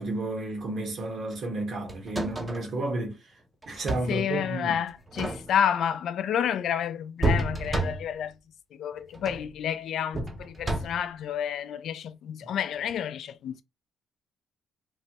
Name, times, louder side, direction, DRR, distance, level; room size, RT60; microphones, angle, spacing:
voice 1, 0.0-3.2 3.7-4.8, right 2 dB, 60° right, 1.2 m, -32 dB
sound 1, 1.9-2.7 3.6-4.2 5.0-5.8 7.2-8.3 9.1-9.5 10.1-11.1 12.8-13.0, right 1 dB, 20° right, 0.6 m, -30 dB
voice 2, 4.1-8.3 8.8-13.6, left 9 dB, 70° left, 0.3 m, -30 dB
3.0 x 2.2 x 2.8 m
cardioid pair, 90°, 0 cm